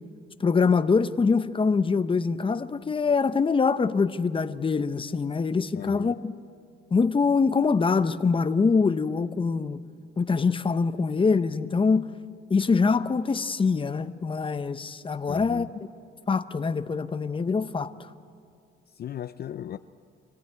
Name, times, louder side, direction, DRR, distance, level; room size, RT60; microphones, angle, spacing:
voice 1, 0.4-6.3 6.9-9.8 10.2-12.1 12.5-15.7 16.3-18.1, left 4 dB, 25° left, 0.8 m, -24 dB
voice 2, 5.7-6.1 15.3-15.7 18.9-19.8, left 10 dB, 50° left, 0.5 m, -36 dB
25.0 x 16.0 x 9.4 m
cardioid pair, 90°, 20 cm